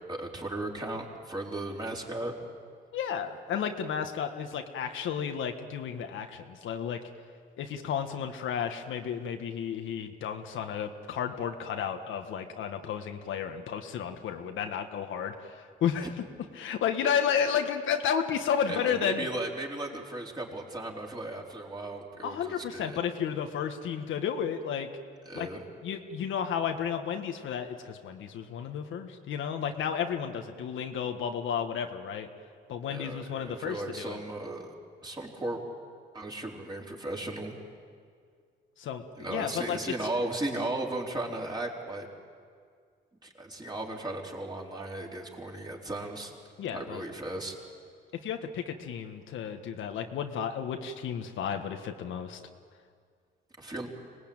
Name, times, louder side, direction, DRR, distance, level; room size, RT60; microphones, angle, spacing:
voice 1, 0.1-2.3 18.7-23.0 25.3-25.6 32.9-34.7 35.0-35.6 36.1-37.6 39.2-42.1 43.2-46.3 46.7-47.5 53.6-53.9, right 2 dB, 20° right, -2 dB, 4.4 m, -36 dB
voice 2, 2.9-7.0 7.6-16.1 16.5-19.3 22.2-24.9 25.3-25.5 25.8-32.3 32.7-34.2 38.8-39.0 39.3-39.8 46.6-47.0 48.2-52.4, left 8 dB, 80° left, 5 dB, 1.6 m, -32 dB
25.0 x 19.5 x 9.0 m, 2.1 s
cardioid pair, 90°, 20 cm